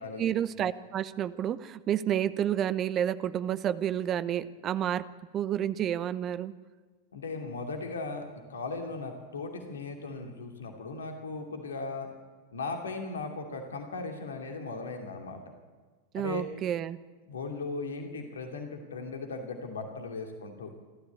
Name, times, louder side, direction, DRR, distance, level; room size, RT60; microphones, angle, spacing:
voice 1, 0.2-5.1 5.3-6.5 16.1-17.0, right 10 dB, 30° right, 16 dB, 0.8 m, -30 dB
voice 2, 7.1-8.2 8.5-12.1 12.5-15.4 16.1-16.4 17.3-20.7, left 3 dB, 70° left, 4 dB, 2.6 m, -37 dB
27.0 x 13.5 x 8.5 m, 1.4 s
figure-of-eight pair, 90°, 0 cm